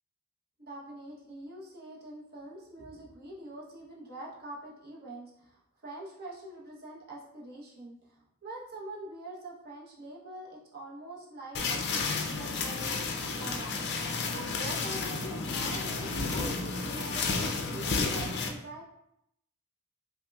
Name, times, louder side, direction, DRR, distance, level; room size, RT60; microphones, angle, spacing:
voice 1, 0.6-13.9 14.3-18.8, right 1 dB, 45° right, -4 dB, 0.9 m, -45 dB
sound 1, 11.5-18.5, left 4 dB, 50° left, 0.4 m, -32 dB
5.5 x 2.2 x 2.3 m, 0.77 s
head